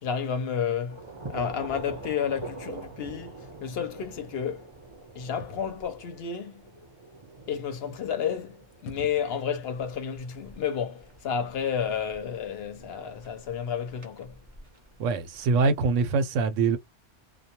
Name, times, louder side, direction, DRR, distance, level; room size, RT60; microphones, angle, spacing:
voice 1, 0.0-4.7 5.1-6.7 7.5-14.4, left 7 dB, 60° left, 0.8 m, -31 dB
sound 1, 0.9-16.1, right 2 dB, 30° right, 0.6 m, -46 dB
sound 2, 2.4-2.7 5.4-6.0 6.9-7.0 8.3-8.4 8.7-9.5, left 2 dB, 85° left, 1.0 m, -44 dB
voice 2, 15.0-16.8, right 4 dB, 90° right, 1.0 m, -24 dB
2.2 x 2.2 x 2.8 m
omnidirectional pair, 1.3 m